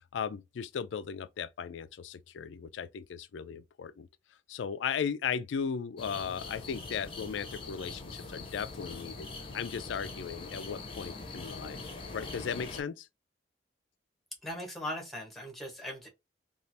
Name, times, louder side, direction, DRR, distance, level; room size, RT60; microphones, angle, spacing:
voice 1, 0.1-4.1 4.5-9.3 9.5-11.8 12.1-13.1, left 7 dB, 75° left, 0.4 m, -36 dB
sound 1, 6.0-12.8, left 3 dB, 30° left, 0.7 m, -43 dB
voice 2, 14.4-16.1, left 1 dB, ahead, 1.0 m, -39 dB
3.2 x 2.4 x 2.7 m
head